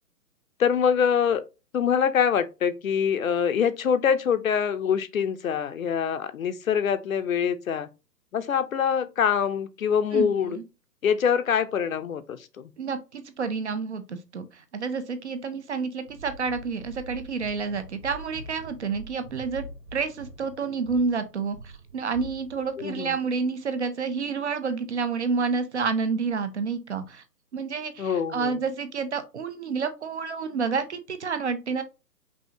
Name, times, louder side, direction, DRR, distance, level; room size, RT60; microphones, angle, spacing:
voice 1, 0.6-1.4 1.7-7.9 8.3-10.6 11.0-12.7 22.8-23.2 28.0-28.6, left 7 dB, 55° left, 0.6 m, -24 dB
voice 2, 10.1-10.6 12.8-19.6 19.9-27.2 27.5-31.8, right 5 dB, 45° right, 0.6 m, -29 dB
sound 1, 16.0-23.3, right 1 dB, 25° right, 1.2 m, -44 dB
5.4 x 2.7 x 2.7 m
hypercardioid pair, 160°, 49 cm